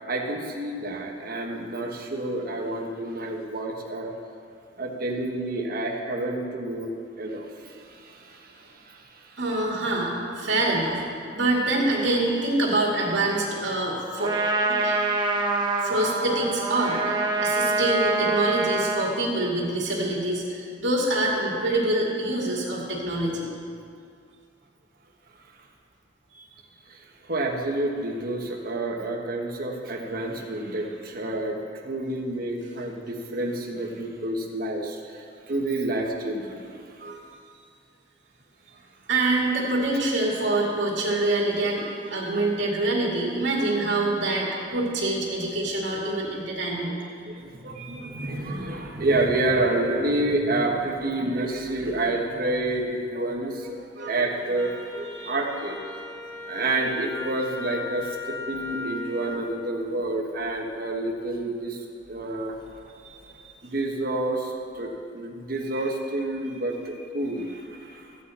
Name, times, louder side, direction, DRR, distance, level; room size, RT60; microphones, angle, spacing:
voice 1, 0.1-4.1 4.8-6.9 7.2-9.4 26.9-31.6 31.8-37.0 47.2-55.8 56.5-62.5 63.6-68.1, right 2 dB, 50° right, 0 dB, 1.2 m, -29 dB
voice 2, 9.4-11.0 11.3-14.3 14.7-15.0 15.8-23.5 26.3-26.4 37.0-37.2 39.1-46.9 47.7-48.4 54.0-54.2 55.2-55.3 63.0-63.2 65.7-65.8, right 2 dB, 75° right, -4 dB, 2.2 m, -26 dB
Trumpet, 14.2-19.2, right 2 dB, 25° right, 1.0 m, -25 dB
Wind instrument woodwind instrument, 54.5-59.4, left 3 dB, 15° left, 0.9 m, -38 dB
14.5 x 8.8 x 4.2 m, 2.4 s
head